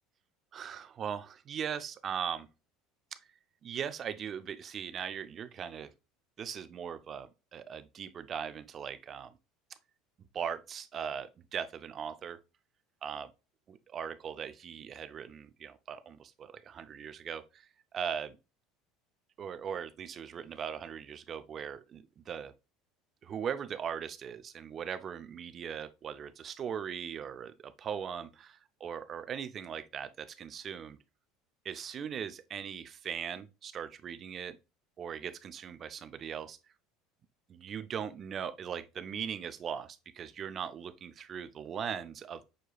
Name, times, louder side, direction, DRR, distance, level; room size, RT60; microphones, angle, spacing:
voice 1, 0.5-2.5 3.6-5.9 6.4-9.4 10.3-12.4 13.0-13.3 13.9-18.4 19.4-22.5 23.2-31.0 31.6-34.6 35.0-36.6 37.5-42.4, right 8 dB, 35° right, 0.5 m, -39 dB
6.4 x 2.8 x 2.3 m
supercardioid pair, 125°, 0 cm